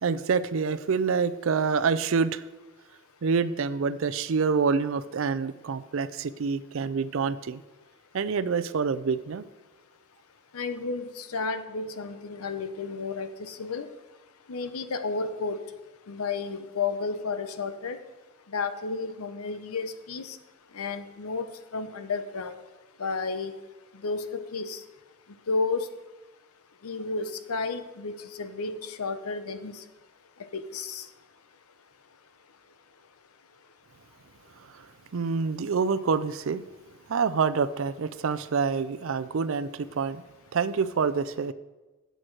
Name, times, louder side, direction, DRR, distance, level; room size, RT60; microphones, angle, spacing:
voice 1, 0.0-2.4 3.2-7.6 8.1-9.4 35.1-36.6 37.1-40.2 40.5-41.5, right 5 dB, 65° right, 14 dB, 0.4 m, -27 dB
voice 2, 10.5-13.9 14.5-15.6 16.1-18.0 18.5-20.4 20.7-22.6 23.0-23.5 23.9-24.8 25.5-25.9 26.8-29.8 30.5-31.1, left 4 dB, 90° left, 10 dB, 0.7 m, -32 dB
8.8 x 7.9 x 4.6 m, 1.1 s
head